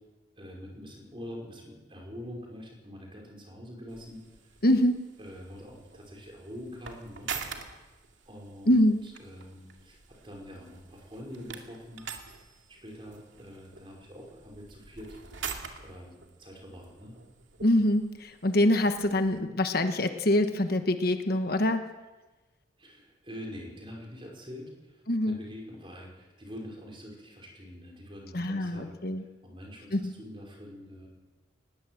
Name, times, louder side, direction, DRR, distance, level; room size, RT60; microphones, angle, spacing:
voice 1, 0.4-4.2 5.2-7.3 8.3-8.7 9.0-12.0 12.7-15.2 15.8-17.2 22.8-28.9 29.4-31.1, equal, 25° right, -1 dB, 5.3 m, -45 dB
sound 1, 3.9-19.4, right 6 dB, 80° right, 2.3 m, -45 dB
voice 2, 4.6-5.0 8.7-9.0 17.6-21.8 25.1-25.4 28.3-29.2 29.9-30.0, left 1 dB, 50° left, 7 dB, 1.3 m, -24 dB
20.0 x 17.5 x 7.8 m, 1.2 s
head